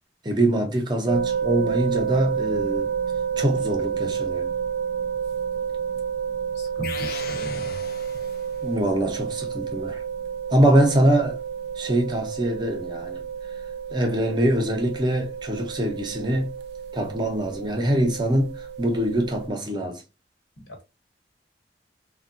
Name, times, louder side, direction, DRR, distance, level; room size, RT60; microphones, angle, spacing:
voice 1, 0.2-2.9 3.4-4.5 8.6-10.0 10.5-11.4 11.8-13.2 13.9-16.5 16.9-20.0, right 1 dB, 25° right, 0.6 m, -23 dB
sound 1, 1.1-19.5, right 7 dB, 65° right, 0.3 m, -30 dB
voice 2, 6.5-7.8 20.6-20.8, equal, 75° left, 1.1 m, -36 dB
sound 2, 6.8-8.7, left 5 dB, 55° left, 0.5 m, -38 dB
3.4 x 2.2 x 2.6 m
head